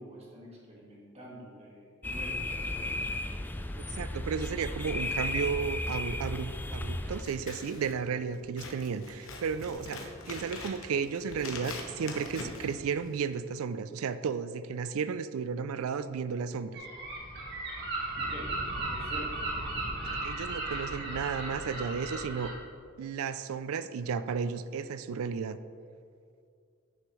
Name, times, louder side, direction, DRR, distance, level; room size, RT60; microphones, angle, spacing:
voice 1, 0.0-3.1 18.2-18.6 18.9-19.5, equal, 30° right, -4 dB, 1.8 m, -46 dB
sound 1, 2.0-7.2, left 2 dB, 10° left, 0.3 m, -34 dB
voice 2, 3.8-16.8 20.1-22.5 23.0-25.6, right 6 dB, 85° right, 13 dB, 0.4 m, -33 dB
Scissors, 7.1-13.4, left 3 dB, 70° left, 1.0 m, -43 dB
Gull seagull, 16.7-22.5, right 2 dB, 55° right, 1.6 m, -35 dB
8.9 x 6.8 x 3.2 m, 2.2 s
head